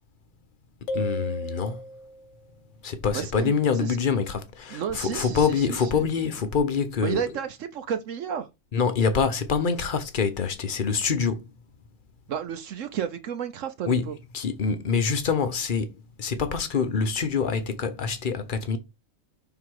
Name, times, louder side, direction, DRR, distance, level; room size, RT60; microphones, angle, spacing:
sound 1, 0.9-2.4, equal, 70° left, 1.0 m, -34 dB
voice 1, 0.9-1.9 2.8-7.2 8.7-11.5 13.9-18.8, left 5 dB, 45° left, 0.9 m, -26 dB
voice 2, 3.1-4.0 4.7-6.0 7.0-8.5 12.3-14.1, right 8 dB, 70° right, 1.0 m, -32 dB
5.8 x 3.8 x 4.7 m
omnidirectional pair, 1.4 m